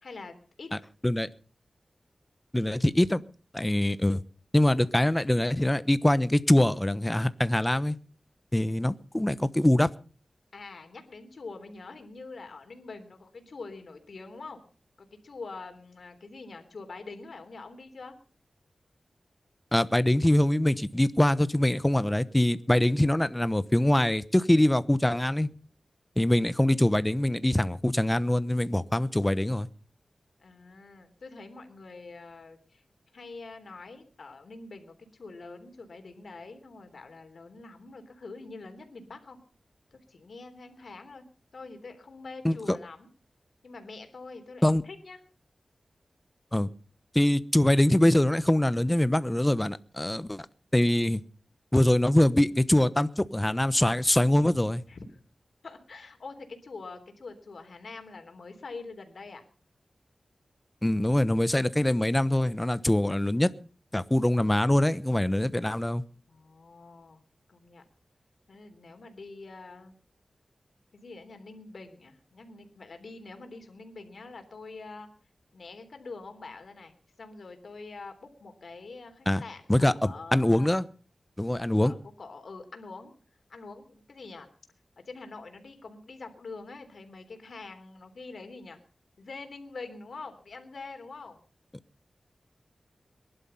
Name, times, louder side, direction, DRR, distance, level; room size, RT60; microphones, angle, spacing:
voice 1, 0.0-0.7 10.5-14.6 15.0-18.1 30.4-32.8 33.1-39.4 39.9-41.3 41.5-43.1 43.6-45.2 54.9-55.2 55.6-59.4 66.3-67.2 67.5-67.8 68.5-70.0 70.9-75.1 75.5-80.8 81.8-83.1 83.5-84.5 85.0-88.8 89.2-91.4, left 3 dB, 75° left, 3.5 m, -45 dB
voice 2, 2.5-3.2 3.5-4.2 4.5-7.9 8.5-9.9 19.7-25.5 26.2-29.7 42.4-42.8 44.6-44.8 46.5-46.7 47.1-50.5 50.7-51.2 51.7-54.8 60.8-63.5 63.9-66.0 79.3-79.4 79.7-80.8 81.4-81.9, left 1 dB, 15° left, 1.0 m, -23 dB
22.0 x 11.5 x 5.6 m
wide cardioid pair, 65°, 0 cm